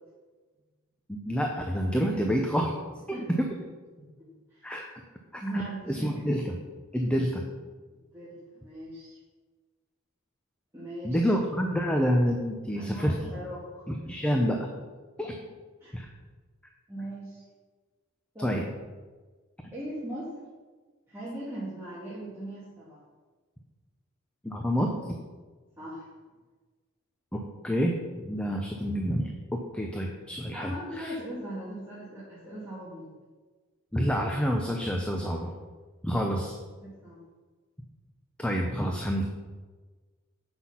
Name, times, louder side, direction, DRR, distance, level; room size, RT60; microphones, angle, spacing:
voice 1, 1.1-2.7 3.1-3.5 4.6-4.8 5.3-6.6 6.9-7.4 11.0-13.1 13.9-14.7 15.2-15.3 15.9-16.1 18.4-18.6 24.4-24.9 27.3-31.1 33.9-35.5 36.0-36.6 38.4-39.2, equal, 5° left, 1 dB, 0.6 m, -28 dB
voice 2, 3.1-3.4 4.2-4.8 5.4-6.2 7.9-9.2 10.7-11.3 12.8-13.9 15.8-16.0 16.9-17.4 18.3-18.7 19.7-20.3 21.1-23.0 25.7-26.1 30.5-33.1 36.8-37.2, right 1 dB, 10° right, -10 dB, 1.9 m, -39 dB
7.7 x 6.1 x 5.7 m, 1.4 s
head